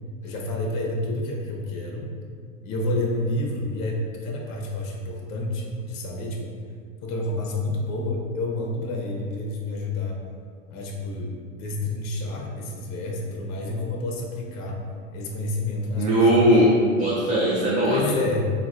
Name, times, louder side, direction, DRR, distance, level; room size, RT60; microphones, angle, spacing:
voice 1, 0.2-2.1 2.6-6.5 7.0-10.2 10.7-14.8 15.1-16.8 17.9-18.4, left 2 dB, 45° left, 0 dB, 0.7 m, -29 dB
voice 2, 16.0-18.1, equal, 20° right, -6 dB, 0.3 m, -19 dB
3.8 x 2.2 x 2.4 m, 2.1 s
hypercardioid pair, 105°, 39 cm